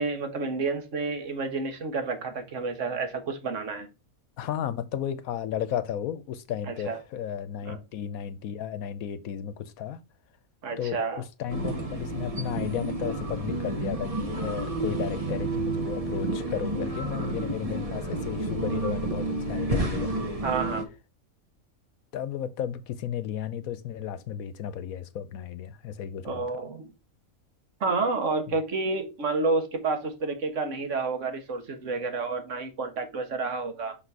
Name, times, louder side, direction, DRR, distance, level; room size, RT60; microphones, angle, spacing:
voice 1, 0.0-3.9 6.6-7.0 7.7-7.8 10.6-11.2 20.4-20.9 26.3-26.9 27.8-34.0, right 3 dB, 60° right, 1.6 m, -30 dB
voice 2, 4.4-10.0 10.8-20.3 22.1-26.6 28.5-28.6, left 9 dB, 80° left, 1.1 m, -34 dB
sound 1, 11.5-20.8, right 2 dB, 30° right, 1.0 m, -30 dB
5.9 x 4.2 x 4.6 m
omnidirectional pair, 1.5 m